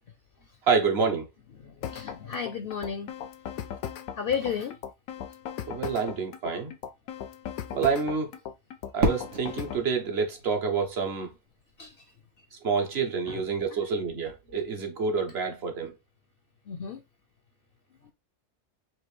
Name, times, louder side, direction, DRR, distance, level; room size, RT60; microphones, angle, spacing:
voice 1, 0.7-1.3 5.7-6.7 7.7-8.3 8.9-11.3 12.6-15.9, right 5 dB, 55° right, 1.0 m, -28 dB
voice 2, 1.6-3.1 4.1-4.8 11.8-11.9 13.3-13.4 13.7-13.9 16.7-17.0, left 7 dB, 60° left, 0.6 m, -33 dB
sound 1, 1.8-9.9, left 9 dB, 90° left, 1.1 m, -38 dB
Fireworks, 9.0-11.9, right 1 dB, 75° right, 1.6 m, -32 dB
4.4 x 2.6 x 3.1 m
omnidirectional pair, 1.4 m